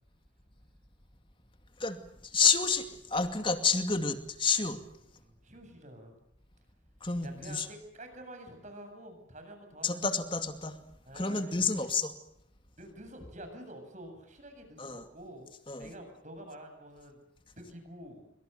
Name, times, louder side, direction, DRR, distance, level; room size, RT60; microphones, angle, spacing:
voice 1, 1.8-4.8 7.0-7.7 9.8-10.8 11.1-12.1 14.8-15.0 15.7-15.9, left 5 dB, 25° left, 8 dB, 2.4 m, -29 dB
voice 2, 5.2-6.2 7.2-10.0 11.1-11.9 12.8-15.5 15.8-17.2 17.5-18.2, right 1 dB, 35° right, 6 dB, 7.7 m, -48 dB
28.0 x 25.5 x 6.8 m, 0.75 s
head